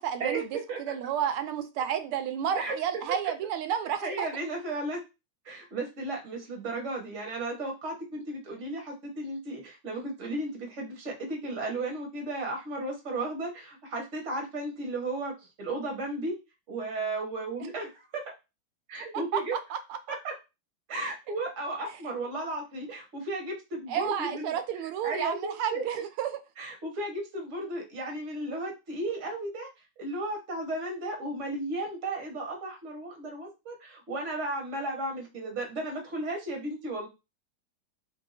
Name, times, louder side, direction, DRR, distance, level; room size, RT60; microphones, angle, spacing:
voice 1, 0.0-4.3 19.1-20.2 21.3-21.4 21.9-22.0 23.9-26.4, right 9 dB, 90° right, 1.5 m, -31 dB
voice 2, 4.0-5.0 5.4-15.3 15.6-16.4 16.7-18.2 18.9-19.6 20.1-20.3 20.9-24.6 25.0-25.9 26.6-29.7 30.0-37.1, right 2 dB, 40° right, 1.3 m, -34 dB
3.2 x 2.7 x 4.0 m
omnidirectional pair, 2.3 m